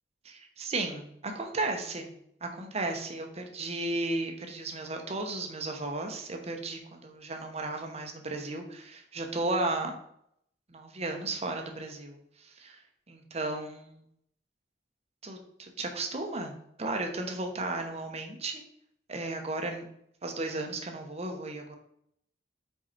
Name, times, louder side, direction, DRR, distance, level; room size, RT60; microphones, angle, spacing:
voice 1, 0.2-2.1 2.4-9.9 10.7-12.8 13.1-14.0 15.2-18.6 19.1-19.9 20.2-21.8, right 2 dB, 35° right, 4 dB, 0.9 m, -34 dB
5.1 x 4.7 x 4.5 m, 0.73 s
head